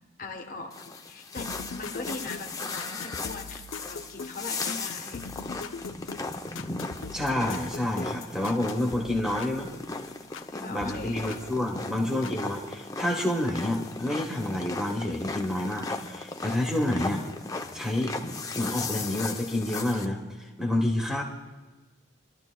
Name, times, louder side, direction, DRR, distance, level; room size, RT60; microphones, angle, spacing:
voice 1, 0.2-5.2 10.5-11.4, left 3 dB, 45° left, 3 dB, 1.2 m, -41 dB
sound 1, 0.7-20.1, left 3 dB, 20° left, 0.6 m, -37 dB
sound 2, 1.4-10.5 10.8-12.4 13.2-13.3, left 4 dB, 90° left, 0.7 m, -42 dB
voice 2, 7.1-9.7 10.5-17.2 17.7-18.1 18.5-21.2, left 1 dB, 5° right, 0 dB, 1.4 m, -29 dB
26.5 x 12.0 x 2.3 m, 1.2 s
head